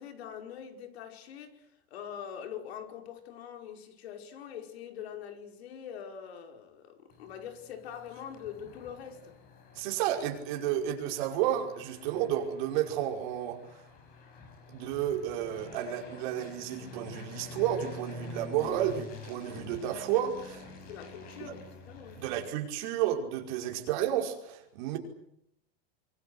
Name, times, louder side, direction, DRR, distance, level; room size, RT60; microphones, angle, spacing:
voice 1, 0.0-9.3 10.5-10.7 20.8-22.2, left 8 dB, 85° left, 5.3 m, -44 dB
sound 1, 7.1-22.4, left 4 dB, 30° left, 6.0 m, -48 dB
voice 2, 9.7-13.6 14.7-20.7 21.4-21.5 22.2-25.0, right 11 dB, 50° right, 5.4 m, -31 dB
26.0 x 25.0 x 8.2 m
supercardioid pair, 180°, 31 cm